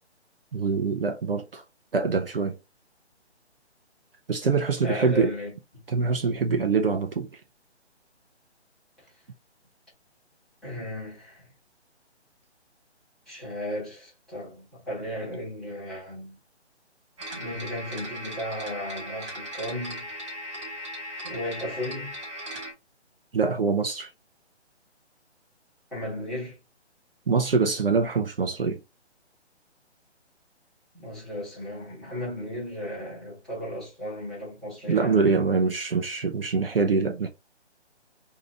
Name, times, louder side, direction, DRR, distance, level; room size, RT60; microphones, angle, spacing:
voice 1, 0.5-1.6 1.9-2.6 4.3-5.3 5.9-7.4 23.3-24.1 27.3-28.8 34.9-37.3, right 4 dB, 55° right, 0.6 m, -24 dB
voice 2, 4.8-5.8 10.6-11.5 13.2-16.4 17.3-20.1 21.2-22.1 25.9-26.6 30.9-35.3, left 1 dB, ahead, 1.1 m, -35 dB
sound 1, 17.2-22.7, equal, 25° right, 1.0 m, -38 dB
2.9 x 2.7 x 3.6 m
figure-of-eight pair, 145°, 34 cm